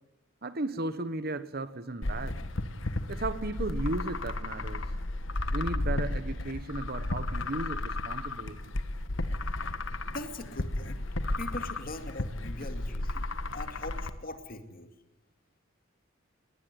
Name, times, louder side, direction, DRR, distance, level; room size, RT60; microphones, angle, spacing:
voice 1, 0.4-2.4 3.1-4.8 5.5-8.6, right 2 dB, 50° right, 13 dB, 1.2 m, -35 dB
sound 1, 2.0-14.1, left 2 dB, 70° left, 1.4 m, -33 dB
voice 2, 10.0-11.0 11.4-13.2 13.5-14.9, left 1 dB, 45° left, 8 dB, 2.2 m, -41 dB
20.5 x 19.5 x 9.7 m, 0.98 s
head